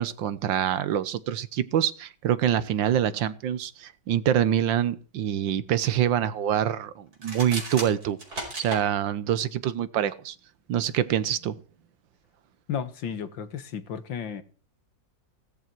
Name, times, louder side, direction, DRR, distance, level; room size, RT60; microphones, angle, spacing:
voice 1, 0.0-8.2 8.6-10.3 10.7-11.6, right 10 dB, 85° right, 1.7 m, -25 dB
sound 1, 7.1-8.8, right 1 dB, 55° right, 5.6 m, -35 dB
voice 2, 12.7-14.4, left 7 dB, 90° left, 2.2 m, -33 dB
17.5 x 13.5 x 4.6 m
omnidirectional pair, 2.0 m